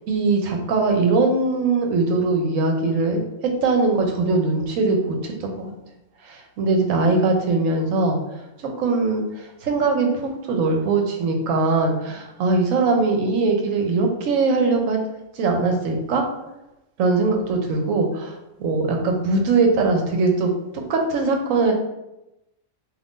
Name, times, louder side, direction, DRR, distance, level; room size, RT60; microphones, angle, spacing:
voice 1, 0.1-3.2 3.6-5.7 6.2-8.2 8.8-15.0 15.4-16.2 17.0-20.5 20.9-21.7, right 3 dB, 70° right, 2 dB, 1.0 m, -21 dB
2.6 x 2.5 x 3.5 m, 0.92 s
omnidirectional pair, 1.5 m